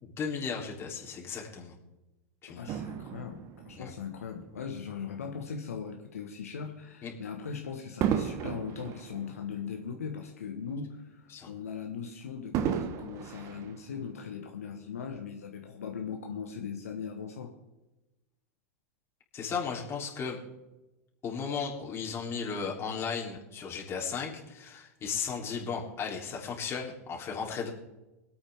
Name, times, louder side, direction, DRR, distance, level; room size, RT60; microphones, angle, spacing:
voice 1, 0.0-1.8 2.4-2.7 3.8-3.9 7.0-7.1 11.3-11.5 19.3-20.4 21.2-27.7, left 6 dB, 30° left, -1 dB, 3.4 m, -35 dB
voice 2, 2.6-17.5, left 6 dB, 80° left, 3 dB, 1.4 m, -39 dB
Fireworks, 2.7-5.3 5.9-6.1 8.0-10.5 10.9-11.0 12.5-14.4 15.2-15.3, right 9 dB, 45° right, 1.1 m, -35 dB
25.0 x 8.8 x 3.6 m, 1.0 s
hypercardioid pair, 90°, 8 cm